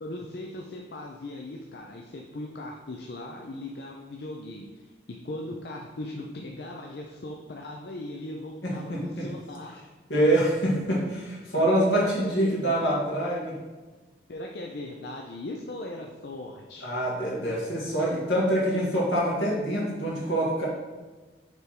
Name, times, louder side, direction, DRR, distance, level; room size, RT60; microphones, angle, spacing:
voice 1, 0.0-9.9 10.4-10.5 11.9-12.8 14.3-16.9 17.2-17.3, left 1 dB, 60° left, 1 dB, 0.5 m, -39 dB
voice 2, 8.6-9.3 10.1-13.5 16.8-20.7, right 1 dB, 80° left, -5 dB, 2.1 m, -25 dB
6.6 x 3.5 x 4.6 m, 1.3 s
head